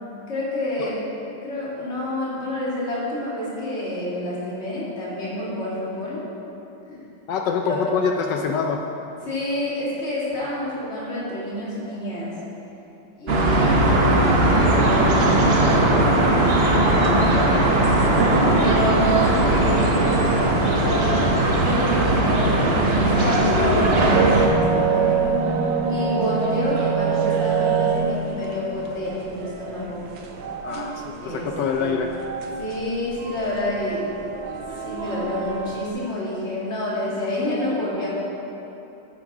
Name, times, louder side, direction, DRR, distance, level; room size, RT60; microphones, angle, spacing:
voice 1, 0.3-1.0 1.4-6.2 6.9-7.0 7.7-7.9 9.2-12.3 13.2-17.7 18.6-25.4 25.9-30.0 31.2-31.5 31.7-32.0 32.6-34.0 34.8-38.1, left 1 dB, 30° left, -7 dB, 2.3 m, -28 dB
voice 2, 7.3-8.8 30.6-32.1, left 6 dB, 75° left, 3 dB, 1.0 m, -25 dB
sound 1, 13.3-24.5, right 2 dB, 90° right, 0.5 m, -18 dB
sound 2, 17.0-35.9, right 6 dB, 70° right, 1.4 m, -28 dB
9.1 x 7.2 x 4.8 m, 2.9 s
omnidirectional pair, 2.4 m